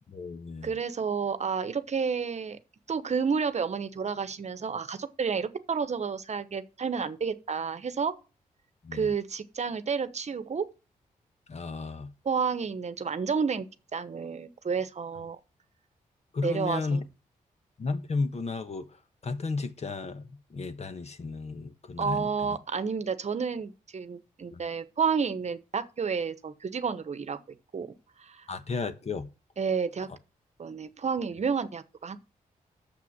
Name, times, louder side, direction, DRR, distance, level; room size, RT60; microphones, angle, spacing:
voice 1, 0.1-0.7 8.8-9.1 11.5-12.1 16.3-17.0 17.8-18.9 19.2-22.6 24.5-24.6 28.5-29.3, left 3 dB, 45° left, 1.2 m, -33 dB
voice 2, 0.6-2.6 2.9-8.1 8.9-10.7 12.2-15.4 16.4-17.0 22.0-27.4 27.7-27.9 28.2-28.5 29.6-30.1 30.6-32.2, right 6 dB, 50° right, 1.0 m, -30 dB
6.9 x 6.0 x 7.3 m
cardioid pair, 60°, 15 cm